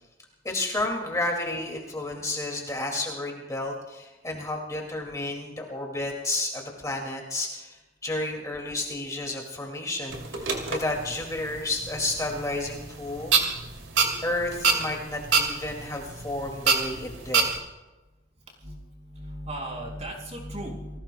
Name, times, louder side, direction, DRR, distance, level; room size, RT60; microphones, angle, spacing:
voice 1, 0.4-10.4 10.7-13.4 14.0-17.5, left 2 dB, 20° left, 1 dB, 2.3 m, -31 dB
sound 1, 10.1-17.6, right 5 dB, 90° right, 2.7 m, -28 dB
voice 2, 18.6-21.0, right 1 dB, 35° right, -1 dB, 5.3 m, -37 dB
29.5 x 19.5 x 2.3 m, 1.1 s
head